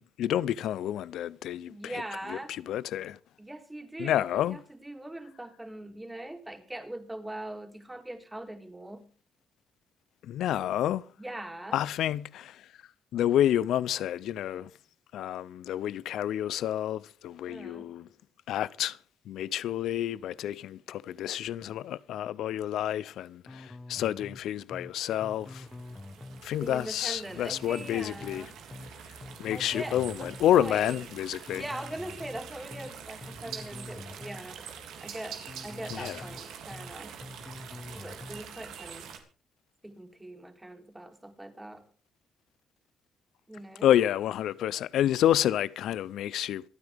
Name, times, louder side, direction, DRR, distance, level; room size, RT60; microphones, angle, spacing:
voice 1, 0.0-2.0 2.3-3.2 4.0-4.6 10.2-11.0 11.7-12.6 13.1-14.7 15.1-18.1 18.5-19.0 19.3-25.7 26.4-28.5 29.4-31.6 35.9-36.2 43.8-46.6, left 11 dB, 80° left, 0.6 m, -29 dB
voice 2, 1.7-2.5 3.4-9.1 11.2-11.8 17.5-18.0 26.6-28.6 29.5-30.9 31.5-34.6 35.0-37.2 37.9-39.1 39.8-41.8 43.5-43.9, right 1 dB, 10° right, 3.4 m, -41 dB
sound 1, 23.5-24.4 24.7-24.9 25.2-26.4 27.5-28.4 28.7-28.9 29.2-30.4 31.5-32.4 32.7-32.9 33.2-34.4 35.5-36.4 36.7-36.9 37.2-38.4, left 2 dB, 20° left, 1.0 m, -45 dB
sound 2, 25.3-39.2, right 7 dB, 85° right, 3.3 m, -45 dB
27.0 x 9.6 x 3.5 m
cardioid pair, 90°, 0 cm